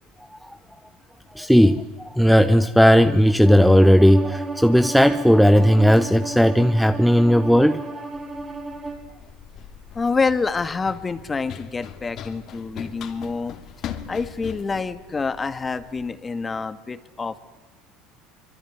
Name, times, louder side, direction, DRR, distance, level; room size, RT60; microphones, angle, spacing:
voice 1, 1.3-7.8, equal, ahead, 0.9 m, -16 dB
Bowed string instrument, 3.4-9.1, right 2 dB, 20° right, 5.8 m, -33 dB
Run, 8.1-16.1, left 8 dB, 55° left, 2.8 m, -40 dB
voice 2, 9.9-13.5 14.1-17.4, left 4 dB, 25° left, 1.9 m, -27 dB
25.0 x 23.5 x 9.6 m
supercardioid pair, 95°, 0 cm